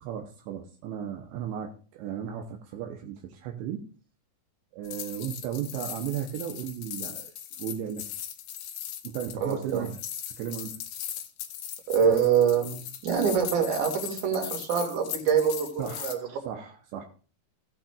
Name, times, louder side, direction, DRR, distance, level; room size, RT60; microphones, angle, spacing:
voice 1, 0.0-3.9 4.7-7.3 7.6-8.0 9.0-9.9 10.4-10.8 15.8-17.1, right 9 dB, 80° right, 4 dB, 3.0 m, -35 dB
sound 1, 4.8-16.2, left 10 dB, 90° left, 1.8 m, -39 dB
voice 2, 9.4-9.9 11.9-16.2, right 7 dB, 50° right, 1 dB, 3.3 m, -25 dB
16.0 x 8.8 x 2.4 m, 0.39 s
omnidirectional pair, 5.3 m